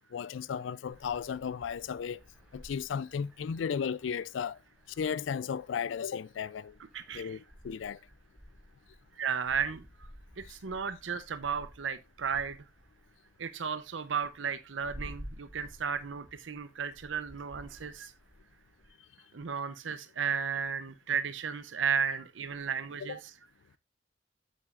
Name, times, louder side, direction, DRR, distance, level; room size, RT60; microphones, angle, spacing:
voice 1, 0.1-2.2 2.5-4.6 5.0-6.8 7.1-8.0 23.0-23.1, left 7 dB, 80° left, 0.4 m, -35 dB
sound 1, 0.9-18.9, equal, 5° right, 4.0 m, -53 dB
voice 2, 6.9-7.4 9.2-9.8 10.5-12.6 13.4-18.1 19.3-23.3, right 6 dB, 90° right, 0.7 m, -34 dB
8.9 x 8.3 x 2.4 m
head